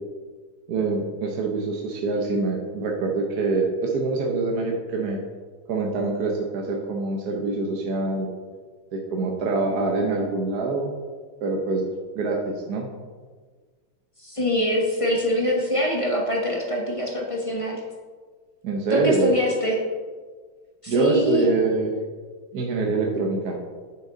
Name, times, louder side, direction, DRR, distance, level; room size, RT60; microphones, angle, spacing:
voice 1, 0.7-5.2 5.7-8.3 8.9-10.9 11.4-11.9 12.1-12.9 18.6-19.3 20.9-21.9 22.5-23.6, right 3 dB, 60° right, 0 dB, 1.2 m, -25 dB
voice 2, 14.2-17.8 18.9-19.8 20.8-21.5, left 1 dB, 20° left, -2 dB, 0.8 m, -24 dB
10.0 x 6.4 x 3.8 m, 1.5 s
omnidirectional pair, 2.4 m